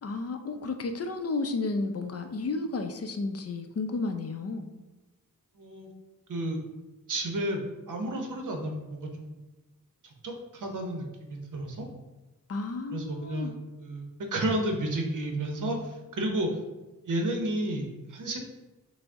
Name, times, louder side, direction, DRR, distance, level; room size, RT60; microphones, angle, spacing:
voice 1, 0.0-4.7 12.5-13.5, left 3 dB, 45° left, 6 dB, 0.5 m, -32 dB
voice 2, 5.6-5.9 6.3-6.6 7.1-9.4 10.0-11.9 12.9-16.5 17.0-18.4, right 1 dB, 65° right, 2 dB, 0.8 m, -32 dB
6.1 x 2.1 x 3.5 m, 1.1 s
wide cardioid pair, 110°, 34 cm